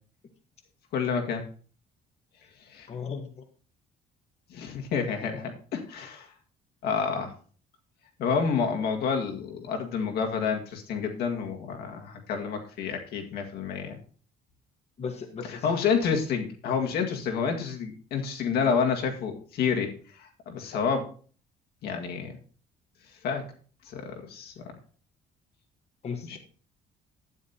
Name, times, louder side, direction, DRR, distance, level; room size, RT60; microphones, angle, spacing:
voice 1, 0.9-1.4 2.7-2.9 4.5-6.3 6.8-7.3 8.2-14.0 15.4-21.1 21.8-22.4 23.2-23.4 23.9-24.7 26.2-26.4, left 6 dB, 70° left, 3 dB, 1.9 m, -29 dB
voice 2, 2.9-3.4 15.0-15.6 26.0-26.4, left 5 dB, 40° left, 5 dB, 1.3 m, -36 dB
12.0 x 9.4 x 2.9 m, 0.42 s
cardioid pair, 110°, 17 cm